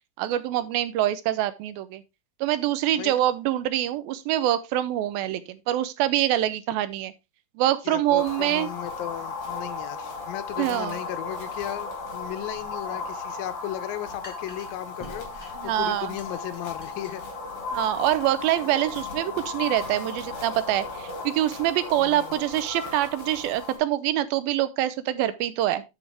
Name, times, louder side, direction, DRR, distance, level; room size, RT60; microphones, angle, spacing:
voice 1, 0.2-2.0 2.4-7.1 7.6-8.7 10.6-11.0 15.6-16.1 17.7-25.8, right 13 dB, 85° right, 2.5 m, -25 dB
voice 2, 7.8-17.2 21.9-22.4, left 13 dB, 80° left, 2.4 m, -36 dB
sound 1, 8.2-23.8, left 4 dB, 55° left, 5.0 m, -36 dB
sound 2, 12.0-19.5, equal, 10° left, 2.2 m, -50 dB
11.5 x 5.4 x 3.4 m
omnidirectional pair, 4.2 m